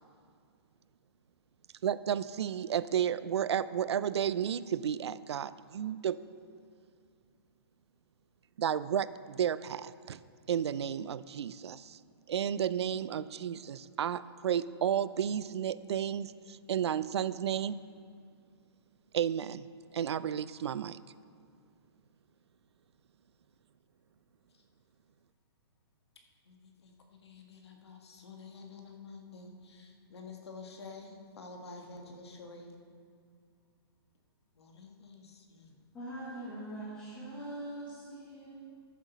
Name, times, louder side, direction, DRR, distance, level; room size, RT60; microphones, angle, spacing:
voice 1, 1.8-6.2 8.6-10.2 10.5-12.0 12.3-17.8 19.1-19.7 19.9-21.0, right 9 dB, 85° right, 16 dB, 0.4 m, -32 dB
voice 2, 26.5-32.7 34.6-35.8, left 4 dB, 75° left, 2 dB, 1.7 m, -49 dB
voice 3, 35.9-38.5, right 1 dB, 10° left, -11 dB, 1.4 m, -42 dB
14.0 x 7.5 x 4.1 m, 2.2 s
hypercardioid pair, 180°, 14 cm